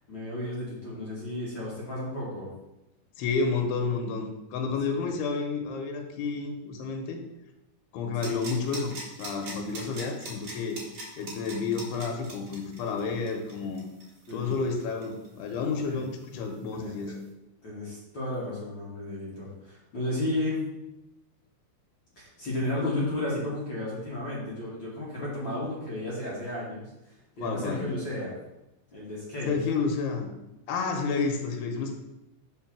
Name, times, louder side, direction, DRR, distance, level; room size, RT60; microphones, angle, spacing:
voice 1, 0.1-2.5 4.9-5.1 8.2-8.4 14.3-14.6 15.9-16.0 16.8-16.9 17.6-20.7 22.1-26.9 27.4-28.3 28.9-29.5, left 1 dB, 45° left, -7 dB, 1.7 m, -33 dB
voice 2, 3.2-7.2 7.9-10.8 11.2-13.8 14.3-17.2 27.4-27.9 29.5-30.3 30.7-31.9, left 4 dB, 85° left, 4 dB, 2.9 m, -30 dB
sound 1, 8.2-15.7 16.0-16.1, right 2 dB, 50° right, 2.8 m, -41 dB
5.4 x 4.9 x 5.9 m, 0.94 s
omnidirectional pair, 4.5 m